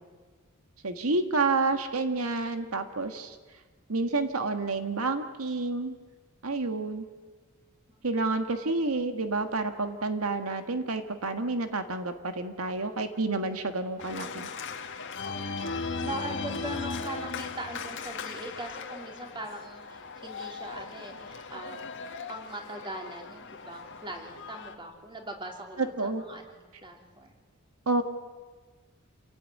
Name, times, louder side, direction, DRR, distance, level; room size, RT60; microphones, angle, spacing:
voice 1, 0.8-3.4 3.9-5.9 6.4-7.0 8.0-14.5 25.8-26.2 27.9-28.0, right 3 dB, 85° right, 7 dB, 1.7 m, -29 dB
Organ, 14.0-24.7, left 4 dB, 60° left, 1.7 m, -38 dB
voice 2, 15.2-15.7 16.0-22.0 22.3-26.5 26.8-27.3, right 1 dB, 25° right, 2 dB, 3.6 m, -41 dB
28.0 x 17.0 x 9.4 m, 1.5 s
head